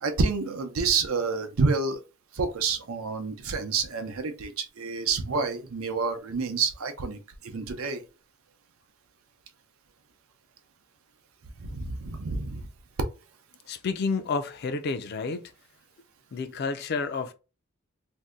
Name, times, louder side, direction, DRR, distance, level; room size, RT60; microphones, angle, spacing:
voice 1, 0.0-2.0 2.3-8.0 11.6-12.7, right 4 dB, 80° right, 0.6 m, -28 dB
voice 2, 13.7-15.5 16.3-17.3, left 4 dB, 50° left, 0.4 m, -30 dB
2.6 x 2.1 x 3.5 m
head